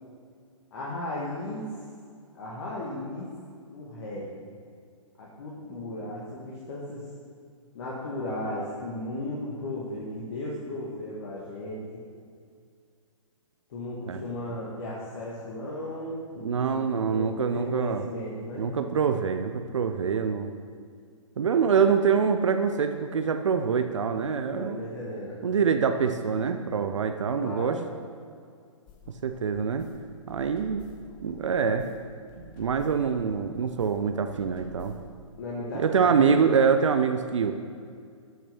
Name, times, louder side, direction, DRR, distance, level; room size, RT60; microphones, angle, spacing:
voice 1, 0.7-1.7 2.3-3.3 3.7-4.4 5.2-7.1 7.7-12.0 13.7-18.7 24.5-25.4 27.4-27.9 35.4-36.4, left 1 dB, 50° left, -5 dB, 2.1 m, -35 dB
voice 2, 16.4-18.1 18.6-20.5 21.4-24.8 25.4-27.8 29.2-29.9 30.3-30.8 31.2-31.9 32.4-34.9 35.7-37.5, right 6 dB, 65° right, 7 dB, 0.7 m, -25 dB
sound 1, 28.9-35.2, left 2 dB, 25° left, 1.2 m, -51 dB
12.5 x 6.1 x 6.0 m, 2.2 s
figure-of-eight pair, 120°, 17 cm